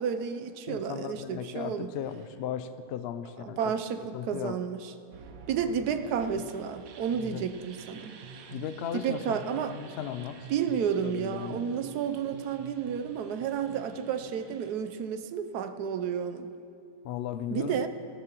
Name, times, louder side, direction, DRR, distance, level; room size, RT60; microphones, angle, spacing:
voice 1, 0.0-1.9 3.4-4.9 5.5-8.2 8.9-9.8 10.5-16.5 17.5-17.9, right 7 dB, 85° right, 9 dB, 1.2 m, -31 dB
voice 2, 0.7-3.7 4.1-4.6 7.3-7.5 8.5-10.5 11.0-11.6 17.0-17.9, left 9 dB, 80° left, 12 dB, 0.5 m, -36 dB
sound 1, 5.1-14.7, right 5 dB, 65° right, 1.2 m, -48 dB
18.5 x 13.0 x 3.0 m, 2.5 s
omnidirectional pair, 1.6 m